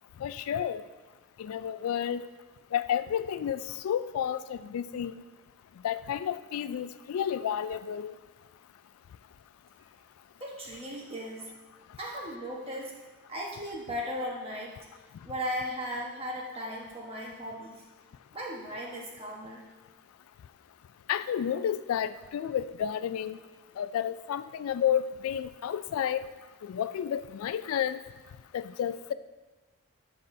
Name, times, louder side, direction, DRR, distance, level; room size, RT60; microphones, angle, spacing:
voice 1, 0.2-0.8 1.4-2.3 2.7-5.2 5.8-8.1 21.1-23.4 23.8-26.2 26.6-28.0 28.5-29.1, left 9 dB, 80° left, 13 dB, 0.3 m, -31 dB
voice 2, 10.4-11.5 12.0-12.9 13.3-14.8 15.2-17.8 18.3-19.6, equal, 25° right, -2 dB, 1.1 m, -37 dB
11.5 x 5.4 x 2.7 m, 1.3 s
head